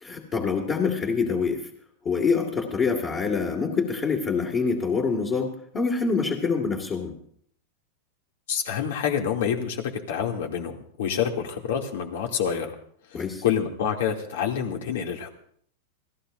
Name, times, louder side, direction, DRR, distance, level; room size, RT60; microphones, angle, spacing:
voice 1, 0.0-1.6 2.1-7.1 13.1-13.4, left 5 dB, 25° left, -1 dB, 2.0 m, -25 dB
voice 2, 8.5-12.7 13.1-15.3, left 8 dB, 75° left, 2 dB, 2.6 m, -27 dB
28.0 x 17.5 x 2.6 m, 0.63 s
supercardioid pair, 145°, 0 cm